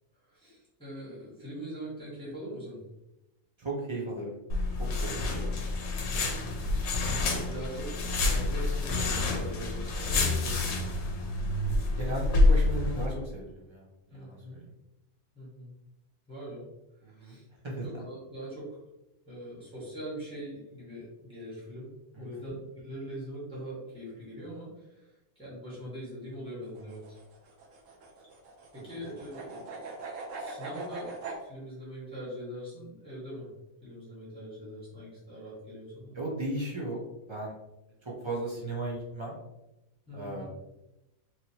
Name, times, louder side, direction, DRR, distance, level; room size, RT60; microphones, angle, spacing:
voice 1, 0.3-2.8 5.2-5.6 6.8-10.9 14.1-14.6 15.3-15.7 16.3-16.6 17.0-18.7 19.3-21.9 22.2-27.2 28.7-29.9 30.4-31.1 31.4-33.5 33.8-36.1 40.1-40.4, equal, 5° left, -8 dB, 1.3 m, -42 dB
voice 2, 3.6-4.4 4.8-5.3 6.0-6.2 12.0-14.7 17.0-17.4 17.6-18.0 22.1-22.4 28.8-28.9 36.1-37.0 37.3-37.5 38.0-39.3 40.1-40.4, right 2 dB, 45° right, -3 dB, 0.3 m, -36 dB
sound 1, 4.5-13.0, left 2 dB, 65° left, 0.8 m, -28 dB
sound 2, 26.7-31.4, right 3 dB, 70° right, 1.0 m, -41 dB
3.1 x 2.8 x 2.8 m, 0.94 s
omnidirectional pair, 1.4 m